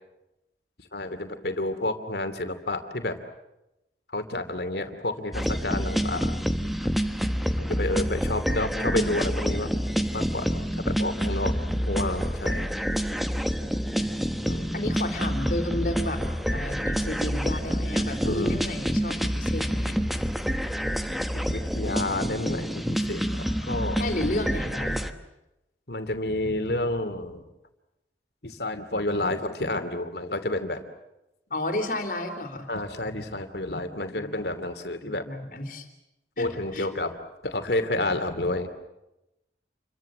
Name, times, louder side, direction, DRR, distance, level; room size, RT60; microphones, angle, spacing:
voice 1, 0.9-3.2 4.1-6.4 7.6-9.7 10.1-10.6 10.9-11.6 11.9-12.7 14.4-14.7 18.2-18.6 21.3-24.0 25.9-27.4 28.4-30.8 32.7-35.2 36.4-37.1 37.4-38.7, left 2 dB, 65° left, 8 dB, 2.7 m, -30 dB
sound 1, 5.3-25.1, equal, ahead, 1.1 m, -28 dB
voice 2, 14.7-16.2 16.5-20.0 24.0-25.1 31.5-32.7 34.1-34.5 35.0-35.9 36.4-36.9, left 1 dB, 50° left, 5 dB, 3.6 m, -32 dB
28.5 x 23.5 x 7.8 m, 0.91 s
head